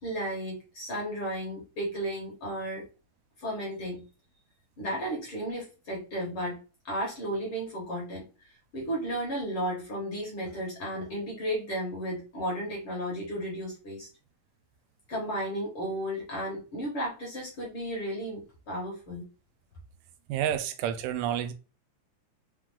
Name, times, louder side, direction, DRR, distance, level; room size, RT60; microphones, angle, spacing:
voice 1, 0.0-2.8 3.4-4.1 4.8-6.6 6.8-8.3 8.7-14.1 15.1-19.2, equal, 55° left, 1.7 m, -34 dB
voice 2, 20.3-21.5, right 10 dB, 85° right, 2.2 m, -29 dB
5.2 x 2.4 x 3.6 m
omnidirectional pair, 3.7 m